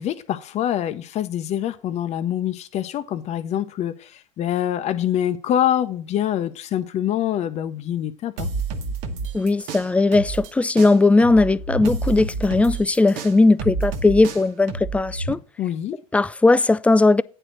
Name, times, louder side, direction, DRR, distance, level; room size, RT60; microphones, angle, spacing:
voice 1, 0.0-8.5 15.6-16.0, left 11 dB, 40° left, 0.7 m, -25 dB
sound 1, 8.4-10.5 10.8-15.3, right 4 dB, 60° right, 1.2 m, -29 dB
voice 2, 9.3-15.4 16.1-17.2, left 3 dB, 10° left, 0.3 m, -18 dB
8.8 x 4.4 x 6.3 m
hypercardioid pair, 85°, 17 cm